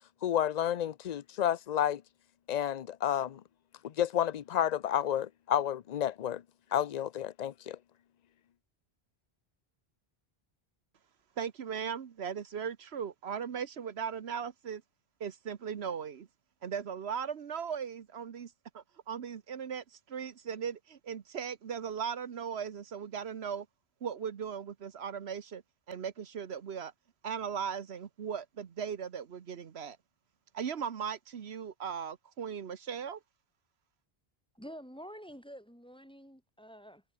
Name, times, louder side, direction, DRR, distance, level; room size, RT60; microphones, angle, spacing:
voice 1, 0.2-2.0 2.5-3.4 3.8-6.4 6.7-7.8, left 10 dB, 50° left, 0.6 m, -30 dB
voice 2, 11.4-14.8 15.2-16.3 16.6-23.7 24.0-25.6 25.9-26.9 27.2-30.0 30.5-33.2, right 7 dB, 80° right, 1.3 m, -38 dB
voice 3, 34.5-37.0, equal, 5° left, 3.4 m, -48 dB
omnidirectional pair, 1.1 m